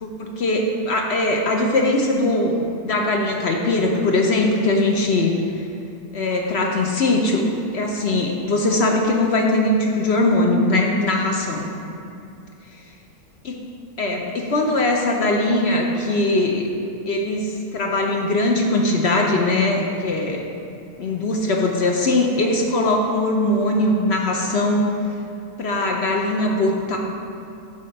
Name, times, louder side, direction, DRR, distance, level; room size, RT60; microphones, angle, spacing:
voice 1, 0.0-5.7 6.1-7.5 7.7-11.6 13.4-13.7 14.0-16.6 17.1-20.5 21.0-24.9 25.6-27.0, left 2 dB, 55° left, 1 dB, 0.8 m, -21 dB
8.3 x 3.7 x 6.4 m, 2.7 s
omnidirectional pair, 1.6 m